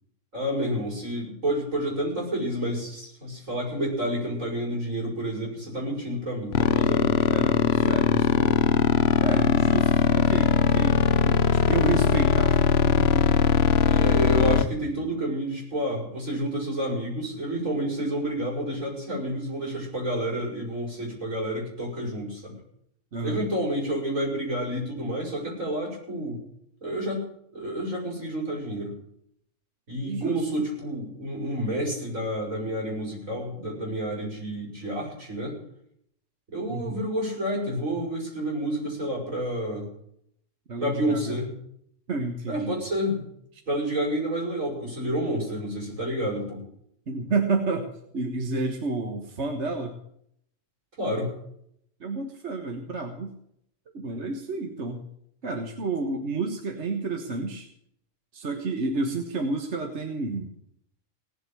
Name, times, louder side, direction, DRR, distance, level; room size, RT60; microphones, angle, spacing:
voice 1, 0.3-7.3 11.5-12.0 13.8-22.6 23.2-26.4 26.8-27.2 27.5-28.9 29.9-35.6 36.5-39.9 40.8-41.5 42.5-43.2 43.7-46.6 51.0-51.3, right 1 dB, 85° right, -2 dB, 7.1 m, -29 dB
sound 1, 6.5-14.6, left 7 dB, 60° left, 1.0 m, -20 dB
voice 2, 7.3-8.6 9.2-13.3 23.1-23.4 30.0-30.7 36.7-37.0 40.7-41.4 42.1-42.8 47.1-50.0 52.0-53.3 53.9-55.0 55.4-57.7 58.3-60.5, right 3 dB, 60° right, 4 dB, 1.7 m, -30 dB
17.5 x 7.7 x 9.1 m, 0.71 s
omnidirectional pair, 1.3 m